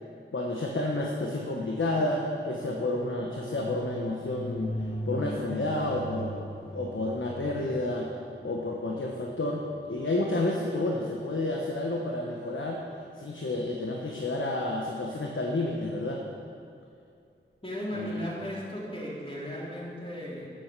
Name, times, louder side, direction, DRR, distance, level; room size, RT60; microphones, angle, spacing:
voice 1, 0.3-6.5 6.7-8.1 8.4-12.8 13.1-16.2 17.9-18.3, left 2 dB, 70° left, 0 dB, 1.1 m, -30 dB
sound 1, 1.7-11.0, equal, 45° left, 1.5 m, -40 dB
voice 2, 17.6-20.5, equal, 25° left, -5 dB, 3.2 m, -36 dB
11.0 x 7.7 x 6.7 m, 2.4 s
wide cardioid pair, 40°, 21 cm